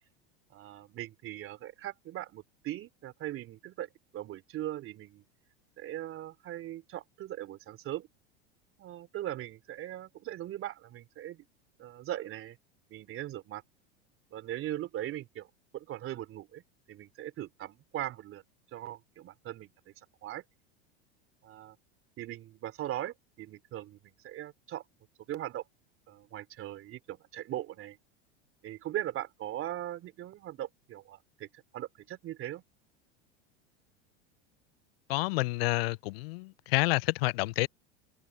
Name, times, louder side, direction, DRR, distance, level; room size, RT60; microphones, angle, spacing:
voice 1, 0.5-5.2 5.8-8.1 8.8-11.4 11.8-12.6 12.9-13.6 14.3-15.5 15.7-16.6 16.9-18.4 18.7-19.7 20.0-20.4 21.4-21.8 22.2-24.8 25.3-25.6 26.1-28.0 28.6-32.6, right 13 dB, 40° right, 3.2 m, -40 dB
voice 2, 35.1-37.7, left 22 dB, 70° left, 0.6 m, -29 dB
hypercardioid pair, 105°, 31 cm